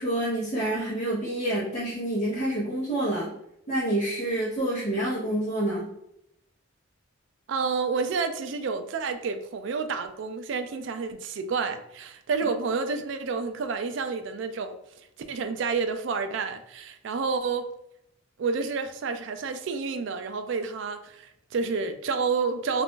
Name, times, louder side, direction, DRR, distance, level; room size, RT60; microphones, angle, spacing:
voice 1, 0.0-3.3 3.7-5.9, right 1 dB, 35° left, 0.9 m, -28 dB
voice 2, 7.5-14.7 15.3-17.7 18.4-22.8, right 4 dB, 60° right, 0.3 m, -29 dB
2.5 x 2.4 x 3.6 m
head